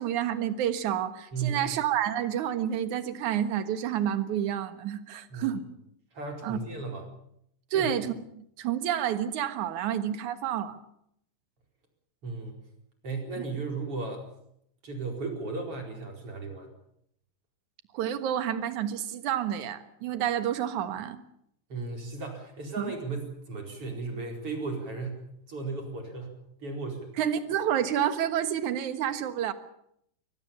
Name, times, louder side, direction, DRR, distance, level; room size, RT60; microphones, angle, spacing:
voice 1, 0.0-5.6 6.4-6.6 7.7-10.8 17.9-21.2 22.8-22.9 27.2-29.5, right 10 dB, 60° right, 11 dB, 2.4 m, -29 dB
voice 2, 1.3-1.7 5.3-5.6 6.1-7.1 7.7-8.0 12.2-12.6 13.0-14.2 14.8-16.7 21.7-25.2 25.5-26.3 26.6-27.1, right 4 dB, 35° right, 3 dB, 5.2 m, -35 dB
23.0 x 20.0 x 7.2 m, 0.72 s
omnidirectional pair, 4.6 m